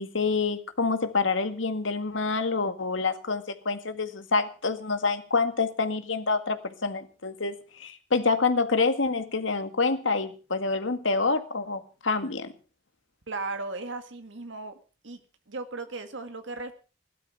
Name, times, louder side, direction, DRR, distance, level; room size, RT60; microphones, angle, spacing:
voice 1, 0.0-12.5, left 4 dB, 85° left, 8 dB, 1.9 m, -27 dB
voice 2, 13.3-14.7 15.0-15.2 15.5-16.7, right 3 dB, 80° right, 8 dB, 1.8 m, -36 dB
16.5 x 12.0 x 5.7 m, 0.36 s
head